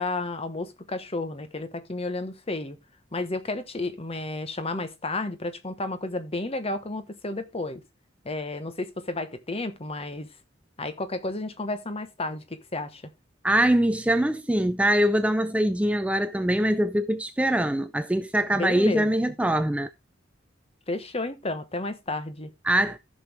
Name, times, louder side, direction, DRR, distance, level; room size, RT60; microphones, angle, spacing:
voice 1, 0.0-2.8 3.1-7.8 8.2-10.3 10.8-13.0 18.5-19.1 20.9-22.5, left 2 dB, 30° left, 1.1 m, -32 dB
voice 2, 13.4-19.9 22.6-23.0, right 1 dB, 5° right, 0.4 m, -23 dB
14.0 x 6.3 x 3.4 m
head